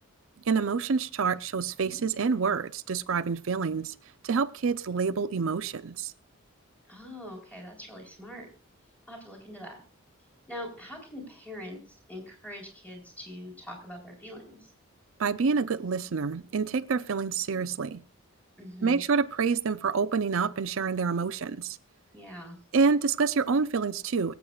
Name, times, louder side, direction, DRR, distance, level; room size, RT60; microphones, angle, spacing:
voice 1, 0.5-3.9 4.2-6.1 15.2-18.0 18.8-21.8 22.7-24.3, right 5 dB, 70° right, 0.5 m, -27 dB
voice 2, 6.9-8.5 9.1-9.8 10.5-11.8 12.1-14.7 18.6-19.0 22.1-22.6, left 1 dB, 5° left, 4.0 m, -43 dB
24.5 x 8.1 x 2.4 m
head